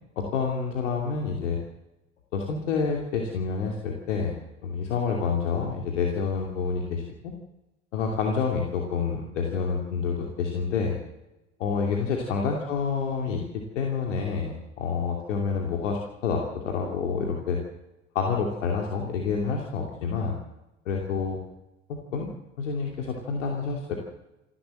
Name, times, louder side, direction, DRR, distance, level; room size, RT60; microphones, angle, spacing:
voice 1, 0.2-1.6 2.3-4.3 4.6-7.3 7.9-11.0 11.6-17.6 18.1-20.4 20.8-21.4 21.9-22.3 22.6-23.9, left 5 dB, 70° left, 1 dB, 2.9 m, -28 dB
27.5 x 12.0 x 7.7 m, 0.98 s
figure-of-eight pair, 70°, 38 cm